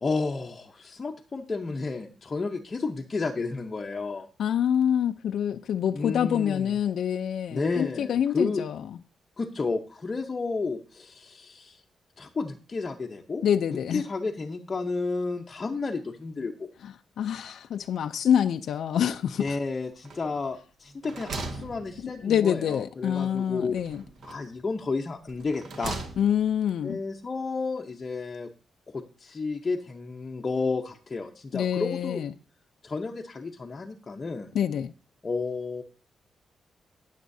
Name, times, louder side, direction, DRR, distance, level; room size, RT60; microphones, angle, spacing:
voice 1, 0.0-4.3 5.9-6.7 7.5-8.6 9.4-11.8 12.2-13.4 13.9-16.7 19.4-23.8 24.2-26.0 26.8-28.5 28.9-32.2 32.8-34.5 35.2-35.8, left 4 dB, 25° left, 0.7 m, -31 dB
voice 2, 4.4-8.8 13.4-14.0 16.8-19.6 22.0-24.0 26.2-27.0 31.5-32.3 34.5-34.9, left 9 dB, 70° left, 0.4 m, -26 dB
sound 1, 20.0-20.5 20.9-22.5 23.7-24.6 25.3-26.5, right 3 dB, 65° right, 1.6 m, -39 dB
19.5 x 7.3 x 2.6 m
wide cardioid pair, 175°, 0 cm